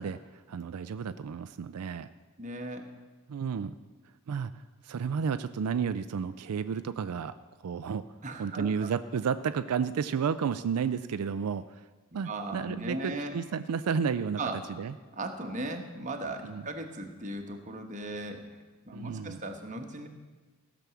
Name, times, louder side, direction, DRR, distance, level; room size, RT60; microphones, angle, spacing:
voice 1, 0.0-2.1 3.3-3.7 4.3-7.3 7.6-8.1 8.4-11.8 12.1-14.4 14.7-14.9 16.4-16.6 18.9-19.4, right 6 dB, 85° right, 11 dB, 0.4 m, -32 dB
voice 2, 2.4-2.9 8.2-8.9 12.3-13.4 14.4-14.6 15.1-18.6 18.9-20.1, right 2 dB, 35° right, 4 dB, 1.1 m, -37 dB
15.5 x 6.1 x 6.9 m, 1.3 s
head